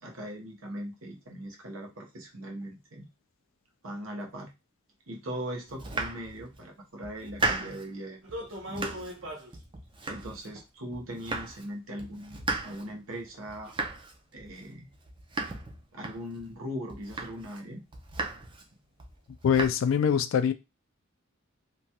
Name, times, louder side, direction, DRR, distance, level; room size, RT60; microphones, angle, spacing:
voice 1, 0.0-3.1 3.8-4.5 5.1-8.9 10.1-13.7 14.3-14.9 15.9-17.8, equal, 90° right, 0.9 m, -40 dB
Domestic sounds home sounds, 5.7-6.6 7.0-7.9 8.3-9.2 9.5-10.6 10.9-11.7 12.0-16.5 16.9-17.6 17.9-18.7 19.0-19.7, right 3 dB, 25° right, 0.4 m, -36 dB
sound 1, 8.2-9.5 10.5-10.6 11.3-11.4 11.9-12.0 12.6-12.7 13.2-13.4 13.7-13.8, left 1 dB, 65° right, 0.8 m, -39 dB
voice 2, 19.4-20.5, left 7 dB, 65° left, 0.3 m, -23 dB
3.0 x 2.2 x 2.7 m
head